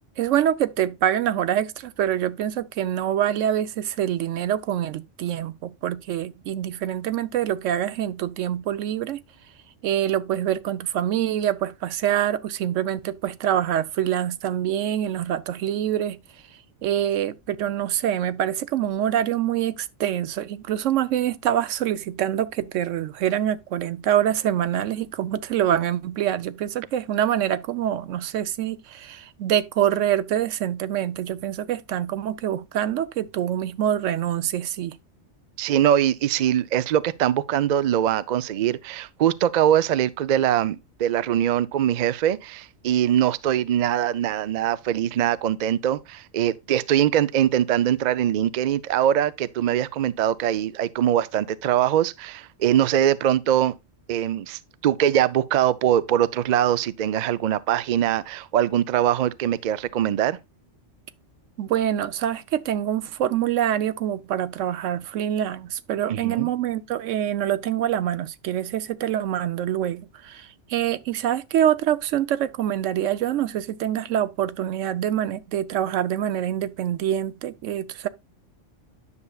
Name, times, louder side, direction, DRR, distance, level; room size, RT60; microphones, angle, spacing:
voice 1, 0.2-9.2 9.8-16.2 16.8-34.9 61.6-78.1, right 11 dB, 85° right, 1.0 m, -25 dB
voice 2, 35.6-53.7 54.1-60.4 66.1-66.5, right 10 dB, 60° right, 0.4 m, -22 dB
9.7 x 6.7 x 2.3 m
omnidirectional pair, 1.3 m